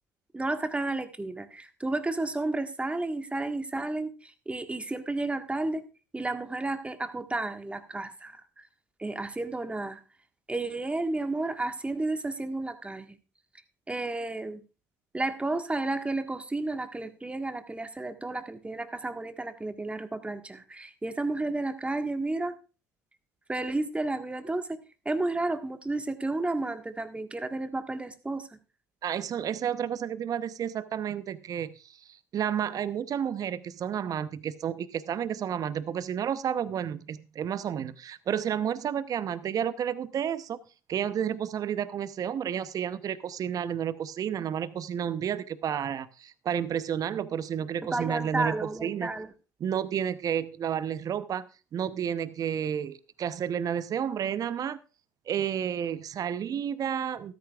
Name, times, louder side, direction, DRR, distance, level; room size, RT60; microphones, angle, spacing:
voice 1, 0.3-5.8 6.1-8.6 9.0-10.0 10.5-13.2 13.9-14.6 15.1-22.5 23.5-24.8 25.0-28.5 47.9-49.3, right 2 dB, 15° right, 8 dB, 1.5 m, -32 dB
voice 2, 29.0-40.6 40.9-49.1 49.6-51.5 51.7-54.8 55.3-57.3, right 9 dB, 45° right, 15 dB, 0.8 m, -31 dB
13.5 x 13.5 x 2.4 m, 0.33 s
hypercardioid pair, 60°, 8 cm